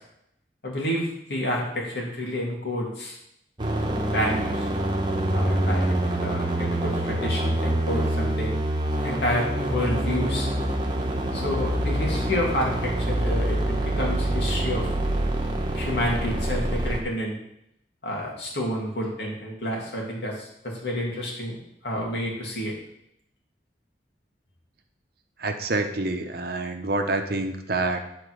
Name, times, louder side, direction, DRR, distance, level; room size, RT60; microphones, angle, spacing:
voice 1, 0.6-3.1 4.1-4.7 5.3-5.9 6.2-8.6 9.0-10.5 11.3-14.9 15.7-17.4 18.0-21.6 21.8-22.7, equal, 70° left, -2 dB, 2.5 m, -29 dB
sound 1, 3.6-17.0, right 1 dB, 25° right, 1.2 m, -26 dB
voice 2, 25.4-28.0, right 2 dB, 60° right, 5 dB, 0.9 m, -27 dB
8.9 x 4.3 x 6.4 m, 0.78 s
head